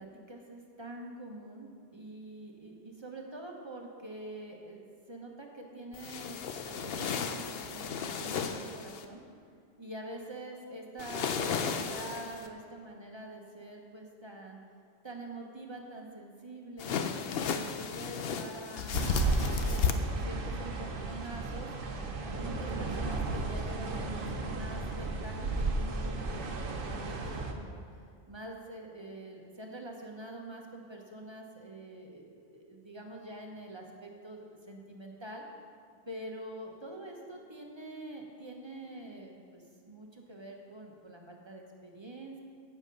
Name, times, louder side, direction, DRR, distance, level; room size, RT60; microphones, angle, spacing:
voice 1, 0.0-9.2 9.8-14.6 15.0-17.0 17.5-27.8 28.3-35.4 36.0-42.4, right 1 dB, 25° right, 1 dB, 1.0 m, -46 dB
sound 1, 5.9-9.0 11.0-12.5 16.8-19.9, left 6 dB, 60° left, 0.8 m, -34 dB
sound 2, 18.9-27.5, right 3 dB, 55° right, 0.9 m, -34 dB
8.7 x 8.0 x 5.3 m, 2.2 s
omnidirectional pair, 1.2 m